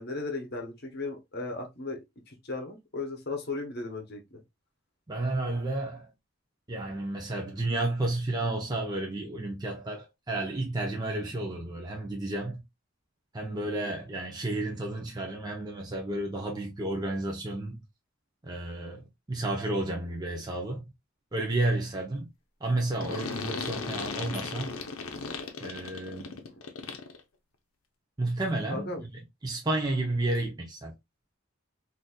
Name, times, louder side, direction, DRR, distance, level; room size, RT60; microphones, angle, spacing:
voice 1, 0.0-2.0 2.3-4.4 13.6-13.9 23.1-23.4 26.5-26.6 28.7-29.0, left 3 dB, 50° left, 0.9 m, -36 dB
voice 2, 5.1-6.1 6.7-12.6 13.3-17.8 18.4-19.0 19.3-20.8 21.3-22.3 22.6-24.7 25.6-26.4 28.2-29.1 29.4-30.9, right 2 dB, 20° right, 0.6 m, -31 dB
sound 1, 23.0-27.2, left 4 dB, 80° left, 0.7 m, -36 dB
4.0 x 2.6 x 2.3 m
head